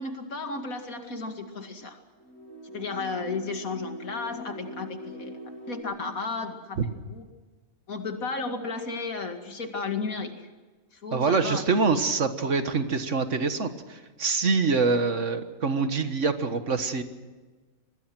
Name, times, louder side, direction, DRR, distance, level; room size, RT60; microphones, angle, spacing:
voice 1, 0.0-2.0 2.7-5.4 5.7-7.3 7.9-10.5 10.9-12.1, left 4 dB, 85° left, 5 dB, 2.7 m, -34 dB
sound 1, 2.2-5.8, left 1 dB, 60° left, 7.3 m, -41 dB
voice 2, 11.1-17.0, right 4 dB, 60° right, 9 dB, 1.8 m, -25 dB
25.5 x 20.0 x 6.2 m, 1.3 s
omnidirectional pair, 1.4 m